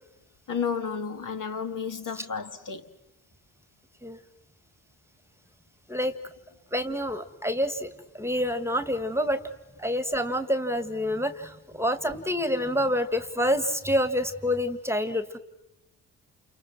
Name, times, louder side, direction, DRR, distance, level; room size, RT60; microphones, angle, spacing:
voice 1, 0.5-2.8, left 6 dB, 50° left, 2.0 m, -32 dB
voice 2, 6.7-7.9 8.1-9.4 9.8-15.4, equal, 5° right, 1.8 m, -27 dB
29.0 x 28.5 x 6.2 m
hypercardioid pair, 50°, 41 cm